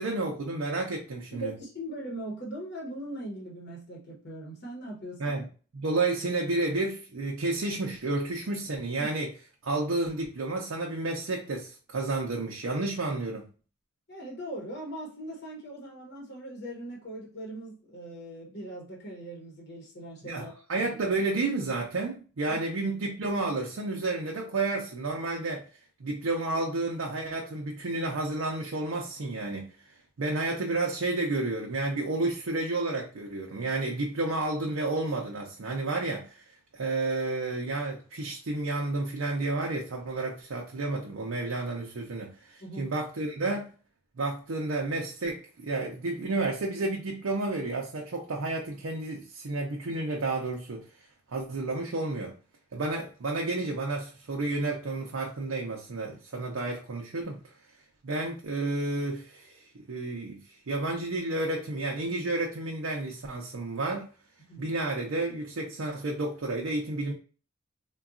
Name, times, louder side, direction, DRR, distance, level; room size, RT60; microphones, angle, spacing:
voice 1, 0.0-1.5 5.2-5.4 5.7-9.3 9.6-13.4 20.2-25.7 26.0-29.7 30.2-36.4 36.7-43.7 44.2-50.9 51.3-52.3 52.7-57.4 58.0-60.4 60.7-64.1 64.6-67.1, right 2 dB, 80° right, 0.6 m, -31 dB
voice 2, 1.3-5.4 14.1-20.9 22.5-22.6 42.6-42.9 64.5-64.7, right 1 dB, 50° left, 0.9 m, -40 dB
3.8 x 2.3 x 2.4 m
head